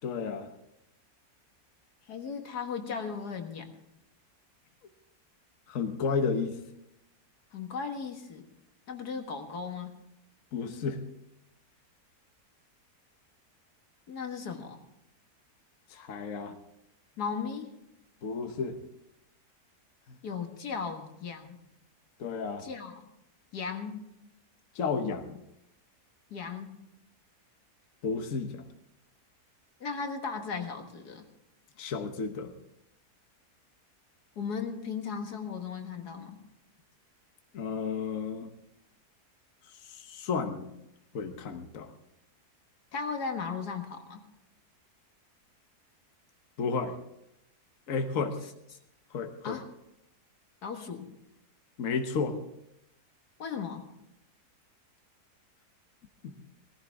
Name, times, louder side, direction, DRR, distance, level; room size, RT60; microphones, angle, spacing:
voice 1, 0.0-0.5 5.7-6.6 10.5-11.0 15.9-16.5 18.2-18.8 22.2-22.6 24.7-25.4 28.0-28.6 31.8-32.5 37.5-38.5 39.8-40.7 41.1-41.9 46.6-46.9 47.9-48.4 49.1-49.6 51.8-52.4 56.2-56.3, left 5 dB, 55° left, 5 dB, 1.4 m, -32 dB
voice 2, 2.1-3.7 7.5-8.4 8.9-9.9 14.1-14.8 17.2-17.7 20.2-21.6 22.6-23.1 23.5-24.0 26.3-26.7 29.8-31.3 34.4-36.4 42.9-44.2 49.4-49.6 50.6-51.1 53.4-53.8, left 5 dB, 80° left, 5 dB, 2.1 m, -36 dB
19.0 x 15.0 x 3.5 m, 0.84 s
omnidirectional pair, 1.7 m